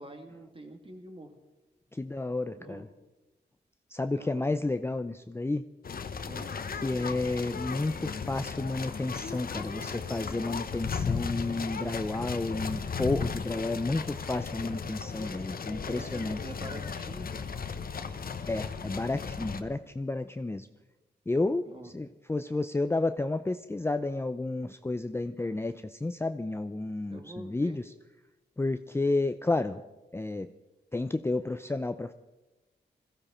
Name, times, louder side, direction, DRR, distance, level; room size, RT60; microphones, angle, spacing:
voice 1, 0.0-1.3 2.6-2.9 4.1-4.6 6.3-6.5 11.6-12.0 15.9-17.5 21.6-21.9 27.1-27.8, right 1 dB, 30° right, 4 dB, 2.4 m, -46 dB
voice 2, 1.9-2.9 3.9-5.7 6.7-16.4 18.5-20.7 21.3-27.8 28.6-29.8 30.1-30.5 30.9-32.1, left 2 dB, 15° left, 9 dB, 0.5 m, -31 dB
sound 1, 5.8-19.6, left 5 dB, 55° left, 1.0 m, -36 dB
21.5 x 15.0 x 4.4 m, 1.0 s
wide cardioid pair, 95°, 18 cm